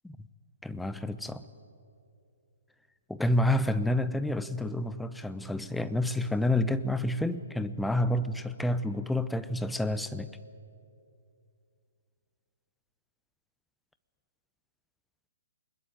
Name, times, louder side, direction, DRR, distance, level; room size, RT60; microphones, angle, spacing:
voice 1, 0.6-1.4 3.1-10.3, left 1 dB, 5° left, 13 dB, 0.8 m, -29 dB
21.5 x 20.5 x 9.1 m, 2.4 s
figure-of-eight pair, 130°, 0 cm